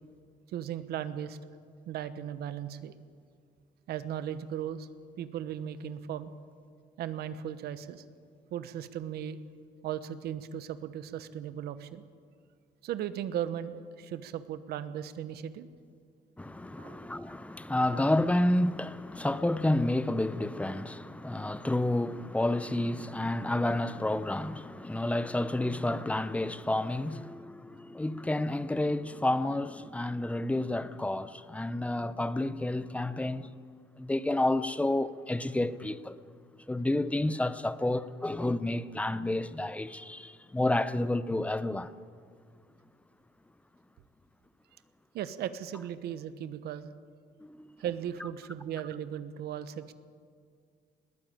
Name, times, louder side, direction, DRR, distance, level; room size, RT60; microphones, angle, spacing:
voice 1, 0.5-1.4 1.9-2.9 3.9-4.9 5.2-6.3 7.0-8.0 8.5-9.4 9.8-12.0 12.8-15.7 16.8-17.1 45.1-46.9 47.8-49.9, right 10 dB, 70° right, 1.1 m, -37 dB
voice 2, 16.4-33.5 34.0-36.2 36.7-41.9 47.4-47.7, left 1 dB, 10° left, 0.7 m, -30 dB
20.5 x 15.0 x 9.0 m
cardioid pair, 110°, 17 cm